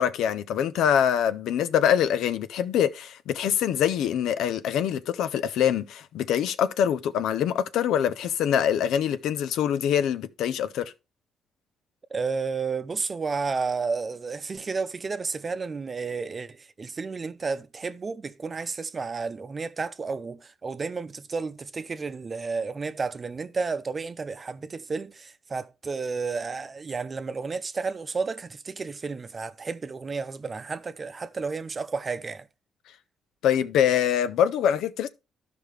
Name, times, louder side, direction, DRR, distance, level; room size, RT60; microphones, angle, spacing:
voice 1, 0.0-10.9 33.4-35.1, left 9 dB, 85° left, 0.6 m, -24 dB
voice 2, 12.1-32.5, right 4 dB, 35° right, 0.7 m, -32 dB
12.5 x 5.1 x 3.2 m
cardioid pair, 90°, 0 cm